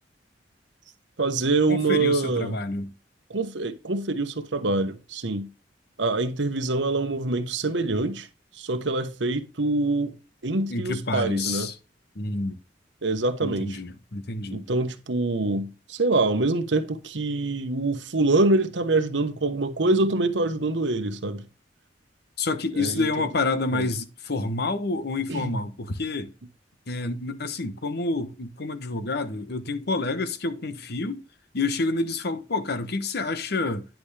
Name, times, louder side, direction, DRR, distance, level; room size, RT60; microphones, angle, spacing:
voice 1, 1.2-2.6 3.3-5.5 6.0-8.3 8.5-10.2 10.4-11.7 13.0-13.8 14.5-21.5 22.7-23.1 23.7-23.9 25.3-25.6, right 2 dB, 80° right, 1.1 m, -25 dB
voice 2, 1.7-2.9 10.7-11.7 12.1-12.6 13.4-14.6 22.4-26.3 26.9-31.2 31.5-33.8, left 3 dB, 65° left, 1.1 m, -28 dB
10.5 x 6.0 x 3.4 m
head